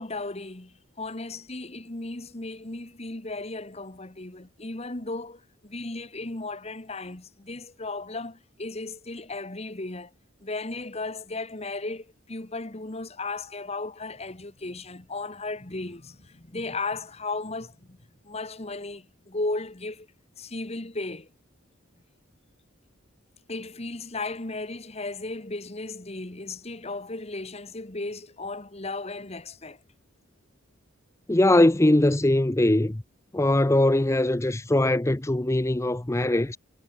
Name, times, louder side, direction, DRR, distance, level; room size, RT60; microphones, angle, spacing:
voice 1, 0.0-10.1 10.4-18.0 18.2-20.1 20.4-21.3 23.5-29.8, left 2 dB, 30° left, 1.5 m, -35 dB
voice 2, 31.3-32.9 33.3-36.6, left 1 dB, 15° left, 0.6 m, -21 dB
head